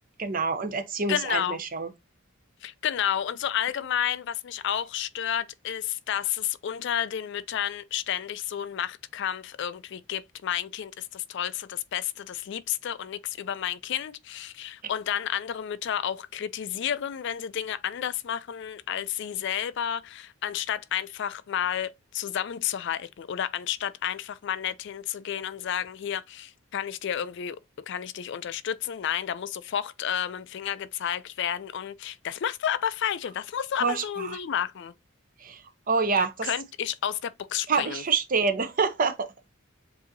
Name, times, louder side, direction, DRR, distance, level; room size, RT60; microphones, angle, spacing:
voice 1, 0.2-1.9 33.8-34.4 35.4-35.6 35.9-36.5 37.7-39.3, right 4 dB, 40° right, 0.7 m, -26 dB
voice 2, 1.1-1.6 2.6-34.9 36.2-38.0, left 9 dB, 60° left, 0.4 m, -31 dB
7.4 x 2.7 x 2.6 m
head